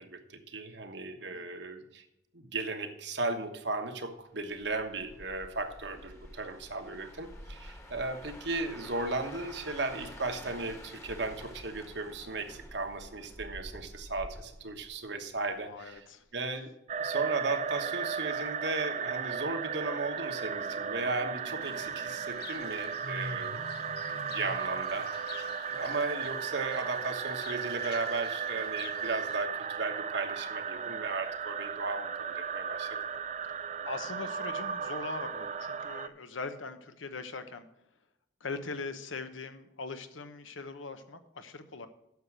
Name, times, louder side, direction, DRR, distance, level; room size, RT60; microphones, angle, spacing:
voice 1, 0.0-2.0 2.3-16.0 16.3-16.7 17.0-23.6 24.1-32.9, right 3 dB, 65° right, 6 dB, 1.2 m, -36 dB
sound 1, 4.5-15.6 15.9-16.2, left 1 dB, 15° left, 1.2 m, -49 dB
voice 2, 15.6-16.2 24.1-24.4 30.8-31.0 33.6-37.7 38.4-41.9, left 3 dB, 85° left, 9 dB, 1.1 m, -41 dB
sound 2, 16.9-36.1, right 6 dB, 35° right, 0.4 m, -35 dB
Fowl / Bird, 21.6-29.5, left 4 dB, 50° left, 0.5 m, -47 dB
9.4 x 6.9 x 6.2 m, 0.87 s
head